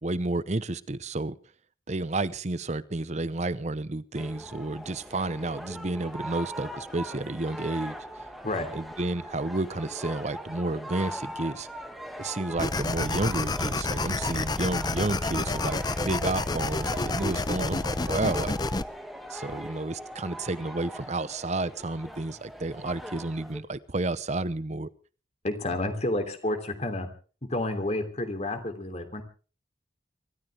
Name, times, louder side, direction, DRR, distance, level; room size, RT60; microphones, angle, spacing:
voice 1, 0.0-1.3 1.9-7.9 8.7-11.7 12.2-18.6 19.3-24.9, right 2 dB, 40° right, 16 dB, 0.8 m, -31 dB
sound 1, 4.1-23.6, equal, ahead, 2.1 m, -40 dB
sound 2, 12.6-18.8, left 3 dB, 25° left, 0.7 m, -29 dB
voice 2, 25.4-27.1 27.4-29.2, left 1 dB, 40° left, 7 dB, 3.1 m, -30 dB
25.5 x 14.0 x 3.5 m, 0.38 s
head